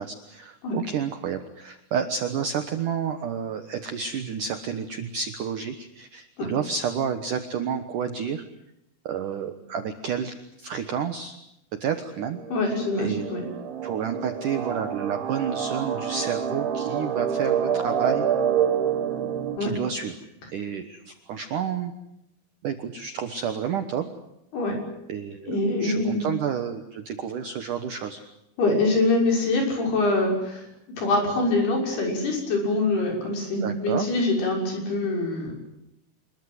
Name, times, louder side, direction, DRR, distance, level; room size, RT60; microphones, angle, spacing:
voice 1, 0.0-8.4 9.1-11.4 11.8-12.4 12.7-13.3 13.8-18.3 19.6-20.2 20.5-21.9 22.6-24.1 25.1-28.2 33.2-33.3 33.6-34.1, right 7 dB, 85° right, 8 dB, 1.8 m, -30 dB
sound 1, 12.0-19.6, right 8 dB, 70° right, 4.7 m, -27 dB
voice 2, 12.5-13.4 19.6-19.7 24.5-24.8 25.5-26.4 28.6-35.5, left 2 dB, 55° left, 1 dB, 8.1 m, -24 dB
26.5 x 22.5 x 8.0 m, 0.83 s
omnidirectional pair, 5.8 m